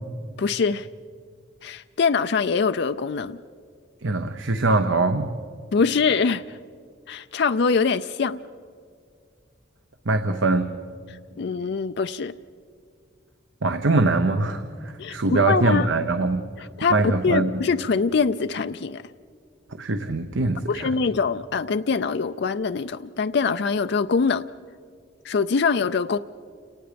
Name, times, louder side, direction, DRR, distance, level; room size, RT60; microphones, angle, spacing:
voice 1, 0.4-0.9 1.6-3.4 5.7-6.6 7.1-8.4 11.4-12.3 15.0-15.9 16.8-19.0 20.7-24.4 25.2-26.2, left 5 dB, 55° left, 10 dB, 0.4 m, -23 dB
voice 2, 4.0-5.3 10.1-10.8 13.6-17.5 19.8-21.0, right 3 dB, 75° right, 8 dB, 0.9 m, -23 dB
29.0 x 18.5 x 5.1 m, 2.1 s
head